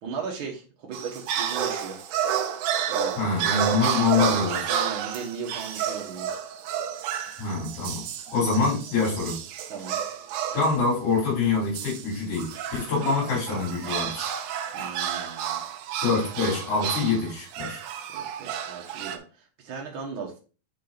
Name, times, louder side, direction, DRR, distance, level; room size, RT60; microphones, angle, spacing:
voice 1, 0.0-2.0 2.9-3.2 4.7-6.4 9.7-10.0 14.7-15.6 18.1-20.4, right 5 dB, 55° right, -1 dB, 1.5 m, -37 dB
sound 1, 0.9-10.8 11.7-19.2, right 9 dB, 85° right, 2.2 m, -31 dB
voice 2, 3.2-4.7 7.4-8.0 8.3-9.4 10.5-14.3 16.0-17.8, left 4 dB, 75° left, -9 dB, 4.5 m, -25 dB
7.4 x 3.9 x 4.0 m, 0.36 s
omnidirectional pair, 3.5 m